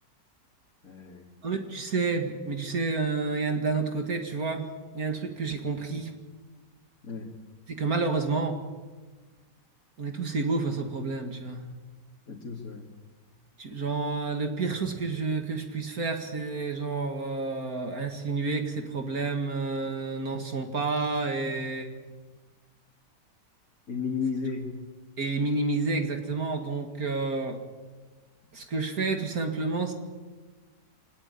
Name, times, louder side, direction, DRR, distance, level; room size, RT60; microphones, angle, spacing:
voice 1, 0.8-1.3 7.0-7.3 12.3-12.9 21.4-21.8 23.9-24.8, left 5 dB, 55° left, -2 dB, 2.9 m, -34 dB
voice 2, 1.4-4.7 4.9-6.1 7.8-8.6 10.0-11.7 13.6-21.9 25.2-27.6 28.5-29.9, right 3 dB, 55° right, 5 dB, 2.4 m, -29 dB
25.0 x 19.0 x 9.6 m, 1.3 s
omnidirectional pair, 1.9 m